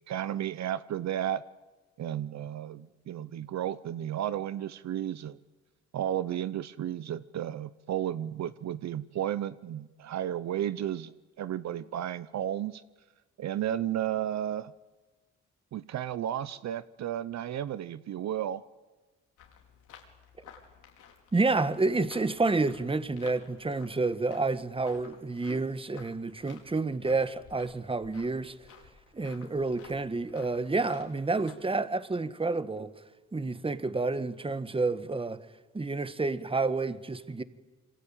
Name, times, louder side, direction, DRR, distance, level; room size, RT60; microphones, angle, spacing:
voice 1, 0.1-1.4 2.0-5.4 5.9-11.1 11.4-12.8 13.4-14.7 15.7-18.7, right 11 dB, 65° right, 0.8 m, -33 dB
sound 1, 19.4-31.5, left 7 dB, 85° left, 5.1 m, -55 dB
voice 2, 21.3-28.5 29.1-32.9 33.3-35.4 35.7-37.4, right 3 dB, 20° right, 1.5 m, -29 dB
27.0 x 24.5 x 9.0 m
cardioid pair, 90°, 30 cm